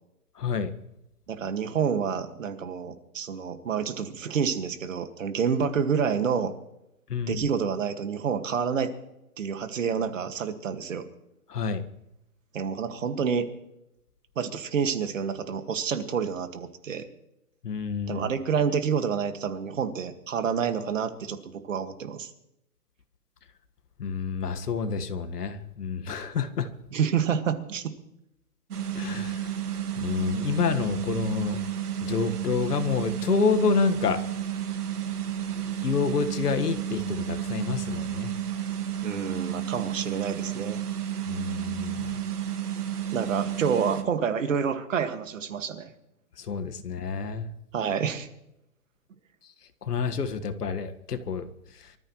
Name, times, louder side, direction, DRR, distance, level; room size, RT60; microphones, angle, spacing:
voice 1, 0.4-0.7 7.1-7.4 11.5-11.8 17.6-18.3 24.0-26.7 28.9-29.5 30.0-31.6 32.0-34.2 35.6-38.3 41.3-42.0 46.4-47.5 49.9-51.5, left 6 dB, 85° left, 9 dB, 1.8 m, -28 dB
voice 2, 1.3-6.5 7.3-8.9 9.4-11.1 12.5-13.5 14.4-17.1 18.1-22.3 26.9-27.9 39.0-40.8 43.1-45.9 47.7-48.3, right 7 dB, 55° right, 8 dB, 2.0 m, -28 dB
sound 1, 28.7-44.0, right 10 dB, 75° right, 1.9 m, -31 dB
24.5 x 14.0 x 3.2 m, 0.85 s
hypercardioid pair, 170°, 45 cm